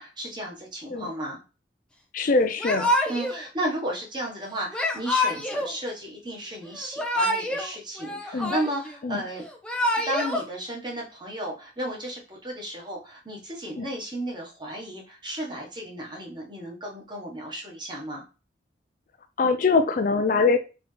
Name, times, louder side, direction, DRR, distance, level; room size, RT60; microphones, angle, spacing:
voice 1, 0.0-1.4 3.1-9.4 10.0-18.2, right 1 dB, 25° right, 1.3 m, -34 dB
voice 2, 2.1-2.9 8.3-8.5 9.0-9.2 13.8-13.9 19.4-20.6, left 4 dB, 45° left, 0.4 m, -22 dB
Yell / Crying sobbing, 2.6-3.4 4.7-5.7 6.8-7.7 8.0-9.0 9.5-10.4, left 1 dB, 5° left, 0.6 m, -26 dB
4.1 x 3.5 x 3.3 m
head